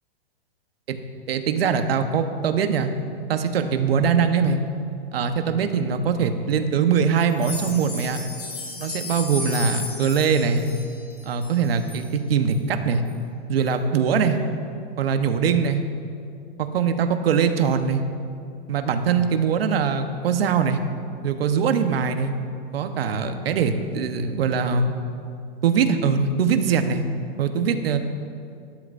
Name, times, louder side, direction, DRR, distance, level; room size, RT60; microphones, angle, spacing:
voice 1, 1.3-2.9 3.3-4.6 5.1-8.2 8.8-10.7 11.3-13.0 13.5-14.4 15.0-15.8 16.6-18.0 18.7-20.8 21.2-22.3 22.7-25.0 25.6-27.0 27.4-28.0, right 6 dB, 70° right, 7 dB, 1.1 m, -22 dB
sound 1, 7.3-12.0 12.5-12.6 13.1-13.2 13.7-13.8, left 3 dB, 40° left, 2.8 m, -35 dB
18.5 x 12.0 x 2.6 m, 2.4 s
hypercardioid pair, 170°, 31 cm